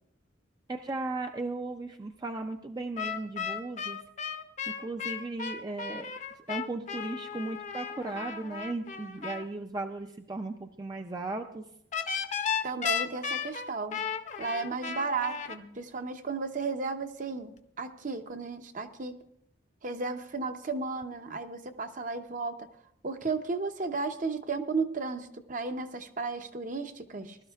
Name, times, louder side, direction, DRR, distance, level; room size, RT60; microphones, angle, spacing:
voice 1, 0.7-4.0 4.7-11.6, right 2 dB, 20° right, 5 dB, 0.4 m, -36 dB
sound 1, 3.0-9.4 11.9-15.6, left 7 dB, 40° left, 0.7 m, -35 dB
voice 2, 12.6-14.0 14.4-19.1 19.8-22.7 23.0-27.4, right 4 dB, 45° right, 7 dB, 0.8 m, -34 dB
20.0 x 12.5 x 2.4 m, 0.75 s
head